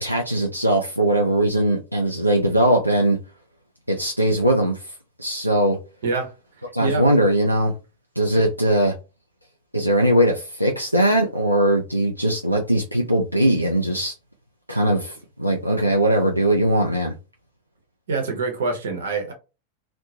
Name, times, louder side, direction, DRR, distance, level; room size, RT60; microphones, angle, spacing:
voice 1, 0.0-3.2 3.9-4.9 5.2-5.8 6.7-7.7 8.2-8.9 9.7-14.1 14.7-17.1, right 1 dB, 90° right, 0.5 m, -20 dB
voice 2, 6.0-6.3 6.8-7.0 8.3-8.4 18.1-19.3, right 4 dB, 65° right, 1.0 m, -25 dB
2.8 x 2.1 x 2.8 m
figure-of-eight pair, 90°, 0 cm